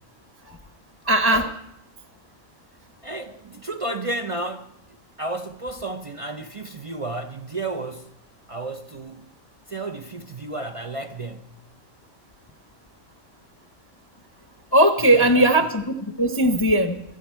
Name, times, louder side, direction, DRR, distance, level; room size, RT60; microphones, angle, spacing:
voice 1, 1.0-1.5 14.7-17.0, right 1 dB, 25° left, 0.7 m, -19 dB
voice 2, 3.0-8.1 8.5-9.3 9.7-11.6 15.0-15.7, right 2 dB, 50° right, 0.4 m, -32 dB
25.0 x 8.6 x 4.5 m
omnidirectional pair, 1.4 m